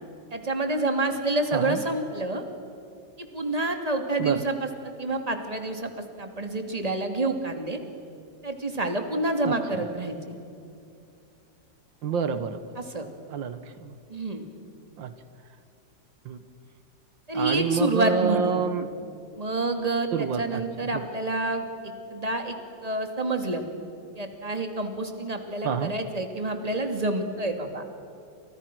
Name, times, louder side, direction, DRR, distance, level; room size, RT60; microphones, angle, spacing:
voice 1, 0.3-2.4 3.3-5.9 6.2-7.8 8.4-10.4 12.8-13.1 14.1-14.4 17.3-18.6 19.4-22.6 22.8-23.6 24.2-27.8, right 2 dB, 20° right, 5 dB, 2.7 m, -28 dB
voice 2, 12.0-12.6 13.3-13.9 15.0-15.1 16.3-16.4 17.3-18.9 20.1-20.6 20.9-21.0 25.6-25.9, right 6 dB, 80° right, 11 dB, 2.0 m, -27 dB
30.0 x 28.0 x 6.2 m, 2.5 s
omnidirectional pair, 2.0 m